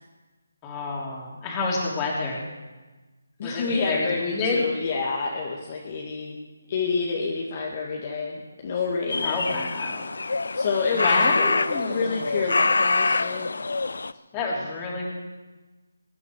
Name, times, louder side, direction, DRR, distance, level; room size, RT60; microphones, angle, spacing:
voice 1, 0.6-2.5 3.4-4.6 9.2-10.2 10.9-12.3 14.3-15.1, left 3 dB, 20° left, -2 dB, 3.3 m, -29 dB
voice 2, 3.4-6.4 6.7-9.7 10.6-13.5, left 4 dB, 35° left, -2 dB, 1.9 m, -28 dB
sound 1, 9.1-14.1, left 3 dB, 70° left, 0.6 m, -25 dB
22.5 x 10.5 x 4.9 m, 1.2 s
figure-of-eight pair, 160°, 0 cm